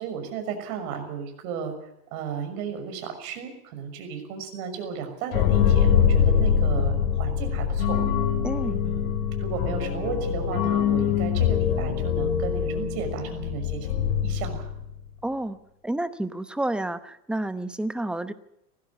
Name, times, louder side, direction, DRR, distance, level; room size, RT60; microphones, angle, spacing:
voice 1, 0.0-1.7 2.1-8.0 8.8-13.9 14.2-14.7, right 7 dB, 65° right, 6 dB, 6.4 m, -34 dB
sound 1, 5.3-15.0, left 8 dB, 65° left, 3.9 m, -23 dB
voice 2, 8.4-8.8 15.2-15.6 15.8-18.3, right 1 dB, ahead, 12 dB, 0.8 m, -30 dB
19.0 x 15.0 x 9.6 m, 0.80 s
supercardioid pair, 125°, 47 cm